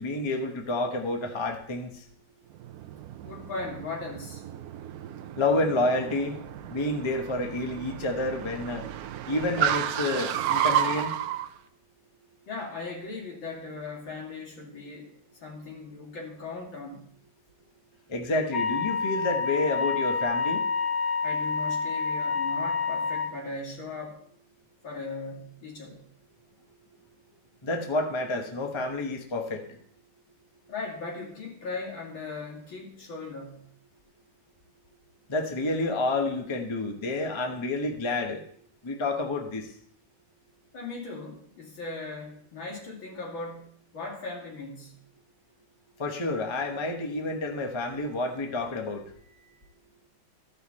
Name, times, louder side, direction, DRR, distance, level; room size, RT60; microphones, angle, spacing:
voice 1, 0.0-1.9 5.4-6.3 6.6-8.8 9.3-11.1 18.1-20.6 27.6-29.6 35.3-38.4 38.8-39.7 46.0-49.0, left 2 dB, 20° left, 3 dB, 0.7 m, -29 dB
Car, 2.5-11.5, right 10 dB, 75° right, 0.8 m, -32 dB
voice 2, 3.2-4.4 12.5-17.1 21.2-24.2 24.8-26.1 30.7-33.7 40.7-45.0, left 3 dB, 80° left, -2 dB, 3.3 m, -38 dB
Wind instrument woodwind instrument, 18.5-23.3, left 5 dB, 40° left, 1.3 m, -28 dB
14.0 x 5.8 x 4.2 m, 0.62 s
omnidirectional pair, 2.1 m